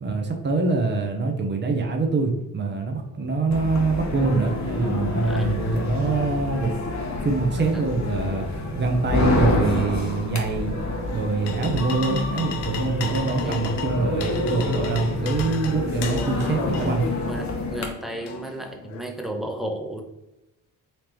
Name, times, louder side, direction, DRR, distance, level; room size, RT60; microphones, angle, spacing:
voice 1, 0.0-6.7 7.2-10.8 11.1-17.0, right 3 dB, 25° right, 3 dB, 0.9 m, -24 dB
sound 1, 2.7-18.4, left 1 dB, 70° left, 1.3 m, -42 dB
sound 2, 3.5-17.9, left 2 dB, 40° left, 1.1 m, -28 dB
sound 3, 11.0-19.0, left 7 dB, 85° left, 0.6 m, -36 dB
voice 2, 16.1-16.6 17.3-20.0, right 1 dB, ahead, 2 dB, 0.9 m, -33 dB
4.3 x 2.8 x 3.3 m, 0.95 s
hypercardioid pair, 45°, 45 cm